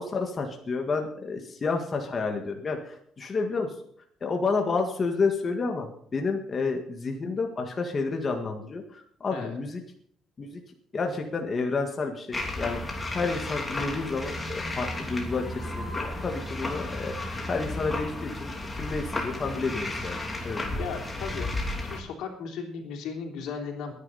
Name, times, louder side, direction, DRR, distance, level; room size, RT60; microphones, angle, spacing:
voice 1, 0.0-3.7 4.2-9.8 10.4-10.6 10.9-12.8 13.1-17.1 17.5-20.2 20.4-20.7, left 4 dB, 30° left, 3 dB, 1.9 m, -30 dB
sound 1, 12.3-22.0, left 2 dB, 15° left, 2.9 m, -33 dB
voice 2, 20.8-21.5 21.9-23.9, left 6 dB, 85° left, 1 dB, 3.5 m, -36 dB
21.5 x 10.0 x 4.2 m, 0.64 s
cardioid pair, 130°, 0 cm